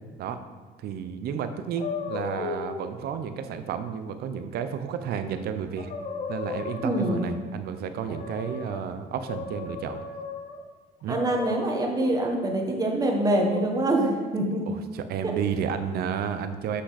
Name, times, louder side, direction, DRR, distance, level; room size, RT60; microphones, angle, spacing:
voice 1, 0.8-5.9 6.3-10.0 11.0-11.2 14.7-16.8, right 7 dB, 70° right, 9 dB, 0.7 m, -32 dB
sound 1, 1.8-2.9 5.3-5.4 5.8-7.5 8.0-8.8 9.3-10.6 11.1-12.2 13.0-13.6, left 4 dB, 50° left, 1.0 m, -35 dB
voice 2, 6.8-7.3 11.1-14.6 15.2-15.3, right 1 dB, 20° right, 1 dB, 1.4 m, -25 dB
7.7 x 6.0 x 4.2 m, 1.4 s
cardioid pair, 110°, 17 cm